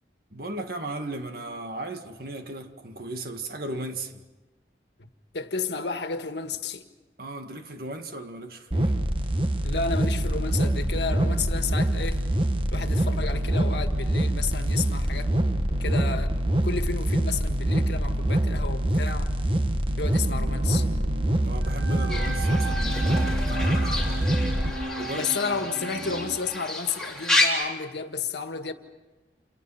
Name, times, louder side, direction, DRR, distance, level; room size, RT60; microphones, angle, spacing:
voice 1, 0.3-4.2 7.2-9.0 21.4-24.5 25.0-25.3, right 2 dB, 55° right, 1.9 m, -36 dB
voice 2, 5.3-6.8 9.6-12.2 12.7-15.3 15.8-16.3 16.6-19.3 20.0-20.9 25.1-28.7, left 5 dB, 75° left, 1.7 m, -32 dB
sound 1, 8.7-24.7, right 1 dB, 30° right, 1.3 m, -25 dB
sound 2, 20.2-26.4, right 2 dB, 80° right, 2.7 m, -36 dB
Fowl / Bird, 22.1-27.5, left 2 dB, 5° left, 3.8 m, -30 dB
28.5 x 28.5 x 5.8 m
head